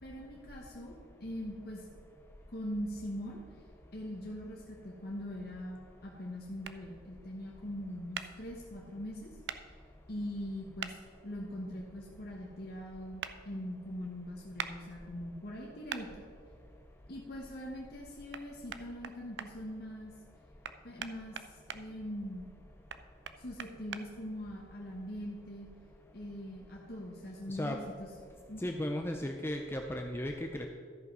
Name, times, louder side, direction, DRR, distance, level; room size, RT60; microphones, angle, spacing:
voice 1, 0.0-1.8 2.5-3.4 3.9-9.4 10.1-11.0 11.2-16.2 17.1-20.1 20.8-22.6 23.4-25.7 26.1-28.1 28.5-28.7, equal, 60° left, -2 dB, 1.2 m, -42 dB
sound 1, 6.6-6.8 8.1-8.3 9.5-9.6 10.8-10.9 13.2-13.3 14.6-14.7 15.9-16.0 18.3-18.4 18.7-19.5 20.6-21.8 22.9-24.0, right 7 dB, 75° right, 0.5 m, -40 dB
voice 2, 28.6-30.7, left 1 dB, 15° left, 3 dB, 0.4 m, -35 dB
13.0 x 5.5 x 5.4 m, 2.2 s
head